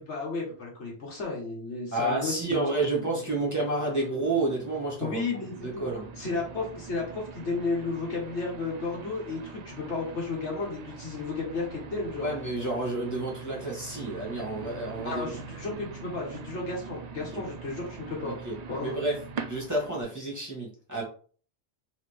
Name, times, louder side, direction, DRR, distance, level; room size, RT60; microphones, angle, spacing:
voice 1, 0.0-2.6 5.0-5.9 6.2-12.3 15.0-18.4 18.7-19.0, left 3 dB, 80° left, -1 dB, 1.7 m, -33 dB
voice 2, 1.9-5.2 5.6-6.1 12.2-15.3 15.6-15.8 17.3-17.4 18.3-18.5 18.8-19.1 19.5-21.0, right 2 dB, 15° right, -4 dB, 1.9 m, -30 dB
sound 1, 2.5-20.0, right 5 dB, 55° right, 0.4 m, -43 dB
4.1 x 3.6 x 3.4 m, 0.42 s
omnidirectional pair, 1.2 m